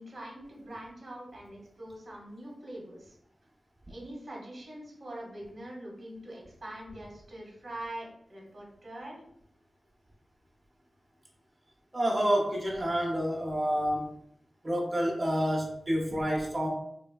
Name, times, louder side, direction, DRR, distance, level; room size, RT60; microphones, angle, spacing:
voice 1, 0.0-3.2 3.9-9.2, right 1 dB, 55° right, -2 dB, 1.0 m, -43 dB
voice 2, 11.9-14.1 14.6-16.7, equal, 25° right, -1 dB, 0.7 m, -28 dB
3.1 x 2.2 x 2.2 m, 0.72 s
wide cardioid pair, 100°, 0 cm